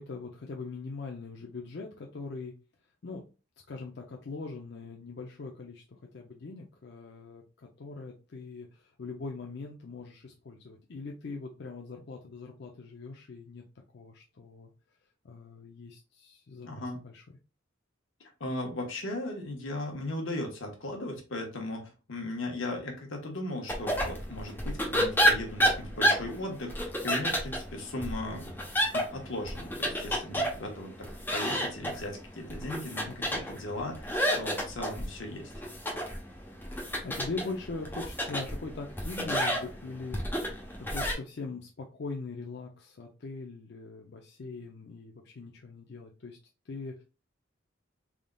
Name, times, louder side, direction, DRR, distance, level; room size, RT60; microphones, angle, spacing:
voice 1, 0.0-2.5 3.0-3.2 3.7-13.6 13.9-14.7 15.2-17.2 33.1-33.5 36.8-46.4 46.6-47.0, left 3 dB, 55° left, 0 dB, 0.5 m, -41 dB
voice 2, 16.6-17.0 18.4-28.5 28.9-35.5, left 1 dB, 80° left, 1 dB, 1.2 m, -37 dB
sound 1, 23.7-41.1, equal, 10° left, 0.8 m, -31 dB
3.7 x 3.6 x 2.2 m, 0.32 s
head